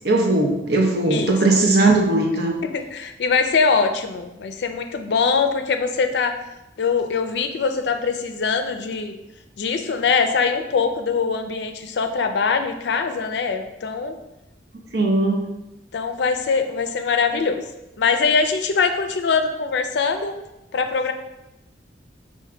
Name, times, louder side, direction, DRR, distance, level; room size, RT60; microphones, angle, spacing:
voice 1, 0.0-2.5 14.9-15.4, right 2 dB, 60° right, 1 dB, 0.7 m, -18 dB
voice 2, 2.7-6.4 6.8-9.2 9.6-14.2 15.9-17.6 18.0-20.4 20.7-21.1, left 5 dB, 70° left, 7 dB, 0.4 m, -22 dB
4.5 x 2.6 x 3.7 m, 0.92 s
head